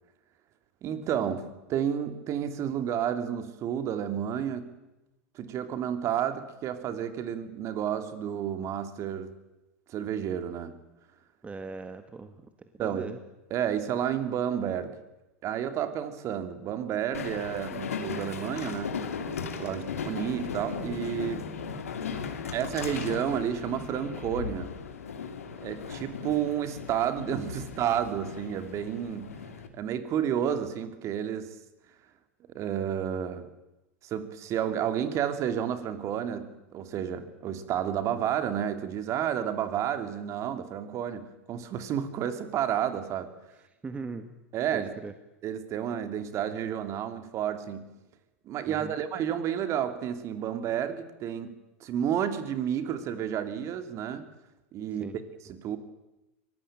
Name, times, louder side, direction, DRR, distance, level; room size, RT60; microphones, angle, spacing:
voice 1, 0.8-4.8 5.3-9.4 9.9-10.8 12.8-13.1 13.5-15.0 15.4-19.1 19.6-21.5 22.5-24.7 25.6-29.4 29.7-31.6 32.5-33.5 34.0-43.3 44.5-44.9 45.4-47.9 48.4-54.3 54.7-55.1 55.5-55.8, right 9 dB, 40° right, 9 dB, 2.8 m, -31 dB
voice 2, 11.4-13.2 19.7-19.8 43.8-44.4 44.7-45.1 48.7-49.0 55.0-55.1, right 4 dB, 15° right, 8 dB, 1.8 m, -40 dB
Train, 17.1-29.7, left 6 dB, 80° left, 2.8 m, -37 dB
24.0 x 19.0 x 9.0 m, 1.0 s
hypercardioid pair, 90°, 8 cm